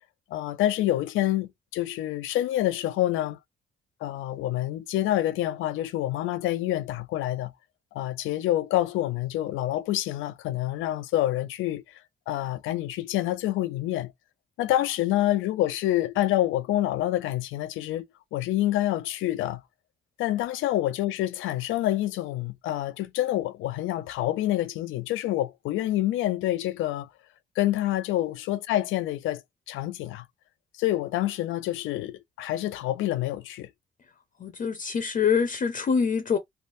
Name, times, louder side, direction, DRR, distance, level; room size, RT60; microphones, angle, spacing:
voice 1, 0.3-3.4 4.0-7.5 7.9-11.8 12.3-14.1 14.6-18.1 18.3-19.6 20.2-27.1 27.6-29.4 29.7-30.3 30.8-33.7, left 14 dB, 90° left, 0.5 m, -27 dB
voice 2, 34.4-36.4, left 6 dB, 40° left, 0.7 m, -25 dB
3.3 x 2.5 x 2.6 m
cardioid pair, 90°, 20 cm